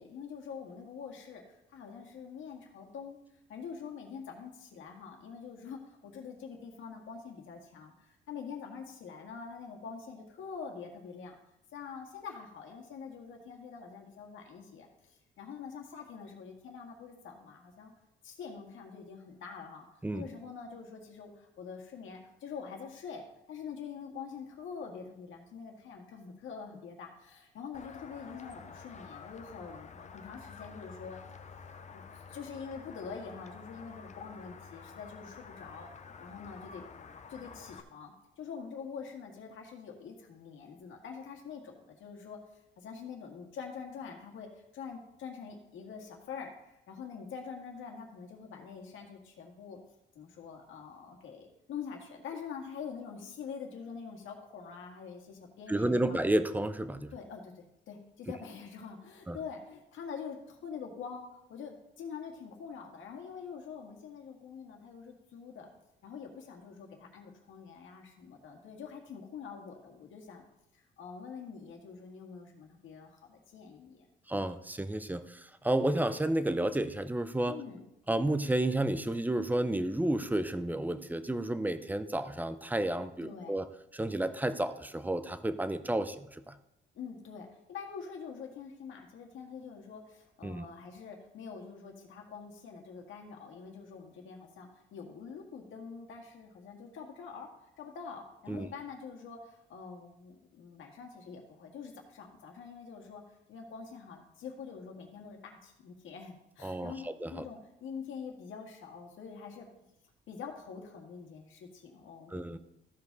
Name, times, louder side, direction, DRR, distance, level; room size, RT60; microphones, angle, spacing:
voice 1, 0.0-3.2 3.5-11.4 11.7-17.9 18.2-19.9 20.1-31.2 31.9-32.0 32.3-35.9 36.2-36.8 37.3-42.4 42.8-49.8 50.2-56.2 57.1-65.7 66.0-70.4 70.7-74.1 77.5-77.8 83.2-83.6 87.0-97.5 97.8-103.2 103.5-109.9 110.3-112.5, left 6 dB, 80° left, 2 dB, 1.8 m, -45 dB
sound 1, 27.7-37.8, left 5 dB, 35° left, 0.7 m, -50 dB
voice 2, 55.7-57.1 59.3-59.4 74.3-77.6 78.1-83.7 83.9-86.6 90.4-90.6 98.5-98.7 106.6-107.4 112.3-112.6, right 1 dB, 10° right, 11 dB, 0.6 m, -31 dB
14.0 x 5.2 x 4.0 m, 0.86 s
cardioid pair, 90°, 20 cm